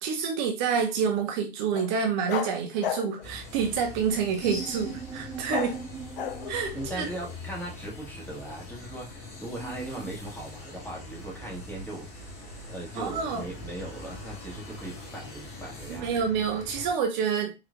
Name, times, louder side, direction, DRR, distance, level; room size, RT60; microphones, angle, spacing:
voice 1, 0.0-5.8 6.5-7.1 12.9-13.4 15.9-17.5, right 6 dB, 50° right, 4 dB, 0.7 m, -28 dB
sound 1, 1.7-1.9 2.3-3.3 4.4-4.6 5.5-5.8 6.2-7.3, left 9 dB, 65° left, 0.5 m, -34 dB
sound 2, 3.2-16.9, left 2 dB, 35° left, 1.8 m, -43 dB
sound 3, 4.4-10.1, right 6 dB, 10° right, 0.5 m, -43 dB
voice 2, 6.7-12.3 12.7-16.1, right 1 dB, 5° left, -3 dB, 1.6 m, -39 dB
4.8 x 3.2 x 2.3 m, 0.25 s
figure-of-eight pair, 85°, 29 cm